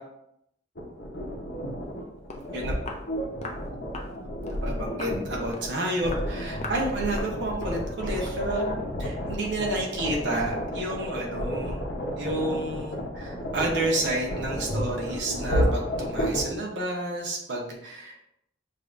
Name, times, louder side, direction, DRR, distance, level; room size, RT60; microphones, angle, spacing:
sound 1, 0.8-16.4, equal, 65° left, 0.9 m, -31 dB
Walk footsteps, 2.0-2.1 2.3-2.5 2.9-3.1 3.4-3.6 3.9-4.1 4.5-4.6 5.0-5.2 5.5-5.7 6.1-6.3 6.6-6.9 7.2-7.4 7.7-7.9 8.2-8.4, left 2 dB, 35° left, 0.5 m, -39 dB
voice 1, 4.6-8.7 9.0-11.9 12.1-18.2, right 1 dB, 65° right, -1 dB, 0.9 m, -30 dB
6.5 x 2.7 x 2.5 m, 0.80 s
head